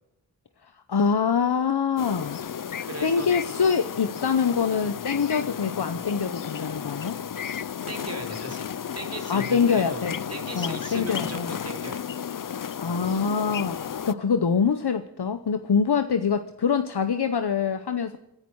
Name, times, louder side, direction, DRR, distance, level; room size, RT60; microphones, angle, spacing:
voice 1, 0.9-2.4 3.0-7.2 9.3-10.2 10.5-11.5 12.8-18.2, left 6 dB, 75° left, 9 dB, 0.8 m, -24 dB
sound 1, 2.0-14.1, left 8 dB, 55° left, 0.5 m, -33 dB
voice 2, 2.8-3.3 7.9-8.7 8.9-12.2, right 1 dB, 40° right, 2 dB, 4.0 m, -38 dB
27.0 x 11.0 x 4.6 m, 0.89 s
wide cardioid pair, 55°, 40 cm